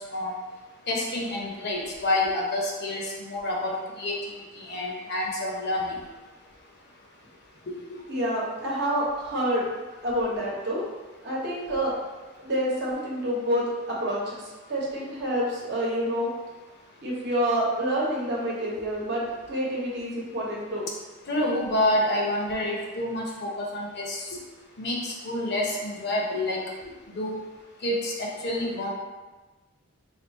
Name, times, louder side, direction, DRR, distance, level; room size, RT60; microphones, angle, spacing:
voice 1, 0.9-4.1 4.6-6.0 21.3-24.2 24.8-26.6 27.1-27.4 27.8-28.9, left 1 dB, 50° left, -2 dB, 0.8 m, -28 dB
voice 2, 8.1-9.6 10.0-10.8 11.2-11.9 12.4-14.4 14.7-16.3 17.0-20.8, equal, 55° right, -4 dB, 1.0 m, -28 dB
3.4 x 2.4 x 4.1 m, 1.2 s
head